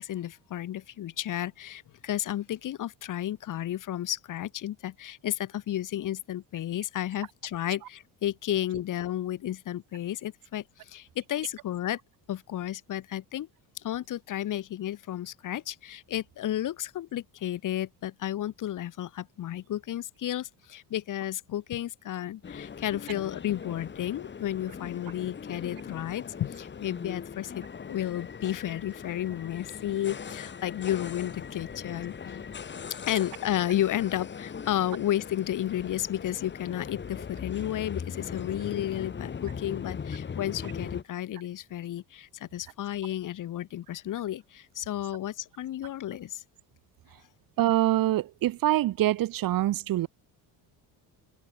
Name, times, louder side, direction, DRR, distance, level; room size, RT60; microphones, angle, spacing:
voice 1, 0.0-12.0 12.3-13.5 13.8-32.5 32.9-46.4, left 12 dB, 45° left, 2.0 m, -32 dB
sound 1, 22.4-41.0, left 6 dB, 25° left, 3.4 m, -40 dB
voice 2, 47.6-50.1, right 14 dB, 50° right, 1.3 m, -25 dB
cardioid pair, 165°, 42 cm